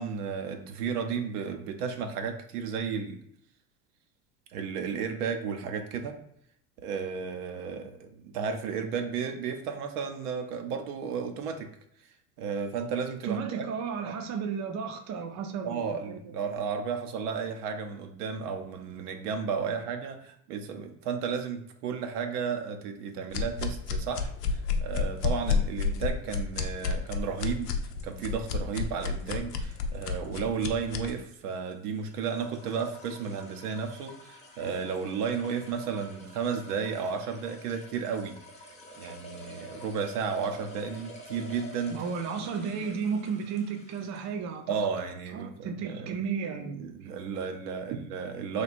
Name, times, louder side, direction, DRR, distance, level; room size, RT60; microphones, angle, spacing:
voice 1, 0.0-3.2 4.5-6.2 6.8-11.7 12.4-13.7 14.1-14.2 15.6-27.7 28.0-38.3 39.0-41.9 44.7-46.1 46.8-48.6, right 6 dB, 75° right, 6 dB, 0.7 m, -33 dB
voice 2, 13.2-16.2 41.9-44.7 45.3-46.9, right 6 dB, 35° right, 6 dB, 0.6 m, -33 dB
sound 1, 23.3-31.1, left 5 dB, 80° left, 0.6 m, -30 dB
sound 2, 27.3-44.5, equal, 15° left, 0.8 m, -50 dB
3.1 x 2.4 x 4.2 m, 0.70 s
hypercardioid pair, 80°, 47 cm